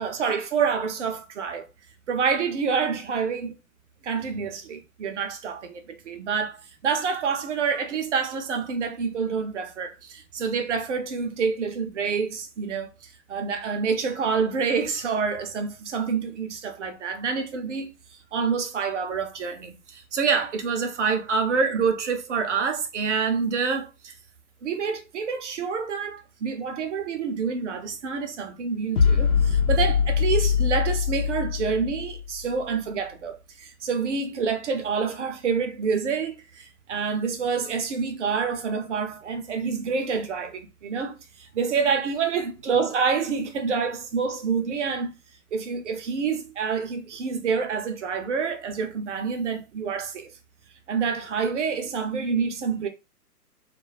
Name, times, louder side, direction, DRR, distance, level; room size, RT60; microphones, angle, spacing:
voice 1, 0.0-1.7 2.1-3.5 4.0-6.6 6.8-17.9 18.3-24.1 24.6-45.1 45.5-50.3 50.9-52.9, right 5 dB, 50° right, 0.7 m, -27 dB
sound 1, 29.0-32.4, left 6 dB, 65° left, 0.8 m, -22 dB
2.4 x 2.2 x 3.2 m
figure-of-eight pair, 130°, 48 cm